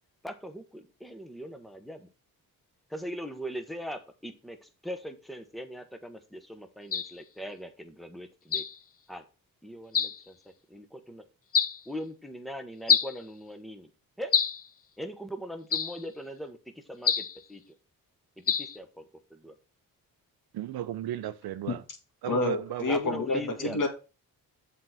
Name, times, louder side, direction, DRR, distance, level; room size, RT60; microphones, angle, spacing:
voice 1, 0.2-2.1 2.9-8.6 9.1-9.2 9.6-10.4 10.7-11.2 11.9-13.9 14.2-14.4 15.0-17.6 18.4-19.0 19.3-19.5 22.9-23.8, equal, ahead, 1.3 m, -40 dB
sound 1, 6.9-7.1 8.5-8.8 9.9-10.2 11.5-11.8 12.9-13.2 14.3-14.7 15.7-16.0 17.0-17.4 18.5-18.8, left 7 dB, 40° left, 0.8 m, -26 dB
voice 2, 20.5-21.8 22.2-23.8, right 11 dB, 90° right, 0.8 m, -35 dB
voice 3, 22.2-23.9, left 3 dB, 60° left, 2.2 m, -29 dB
7.6 x 4.2 x 6.0 m
cardioid pair, 90°, 36 cm